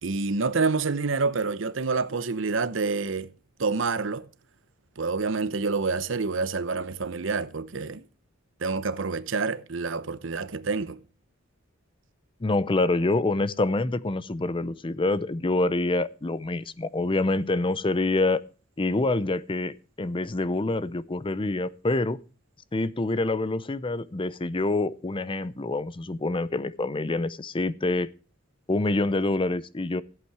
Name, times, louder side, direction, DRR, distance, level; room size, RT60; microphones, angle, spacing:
voice 1, 0.0-3.3 3.6-4.3 5.0-8.0 8.6-11.0, right 4 dB, 70° right, 0.8 m, -27 dB
voice 2, 12.4-18.4 18.8-22.2 22.7-28.1 28.7-30.0, left 2 dB, 25° left, 0.6 m, -26 dB
14.5 x 8.3 x 4.8 m
head